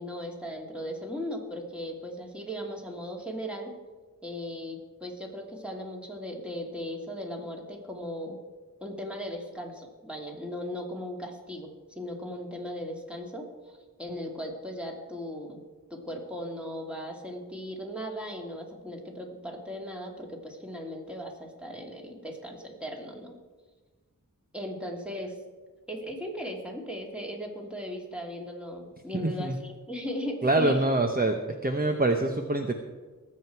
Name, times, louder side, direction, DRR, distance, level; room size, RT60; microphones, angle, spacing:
voice 1, 0.0-3.7 4.2-8.4 8.8-15.6 15.9-23.4 24.5-25.4 25.9-30.8, equal, 5° right, 0 dB, 2.4 m, -37 dB
voice 2, 29.1-29.6 30.4-31.4 31.6-32.7, right 2 dB, 25° right, 4 dB, 0.9 m, -25 dB
19.5 x 7.8 x 4.6 m, 1.3 s
wide cardioid pair, 60°, 34 cm